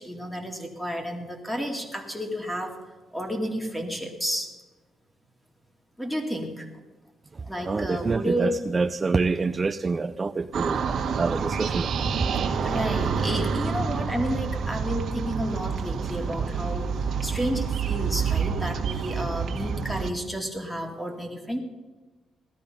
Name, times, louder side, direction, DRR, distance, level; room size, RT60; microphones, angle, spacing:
voice 1, 0.0-2.7 3.1-4.5 6.0-6.7 7.4-8.6 12.6-21.6, equal, 5° left, 3 dB, 2.3 m, -31 dB
voice 2, 7.3-11.9, right 4 dB, 25° right, 9 dB, 0.4 m, -27 dB
sound 1, 10.5-20.1, right 6 dB, 60° right, 1.7 m, -28 dB
17.0 x 13.0 x 5.3 m, 1.3 s
cardioid pair, 120°, 0 cm